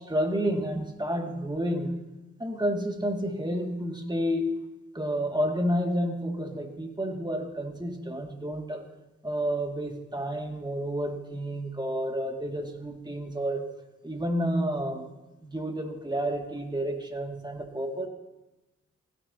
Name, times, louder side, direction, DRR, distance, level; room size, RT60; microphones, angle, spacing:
voice 1, 0.0-1.9 2.4-4.5 4.9-8.8 9.2-13.6 14.0-15.1 15.4-18.1, equal, 15° right, 3 dB, 2.1 m, -30 dB
16.0 x 10.0 x 2.8 m, 1.0 s
cardioid pair, 45°, 32 cm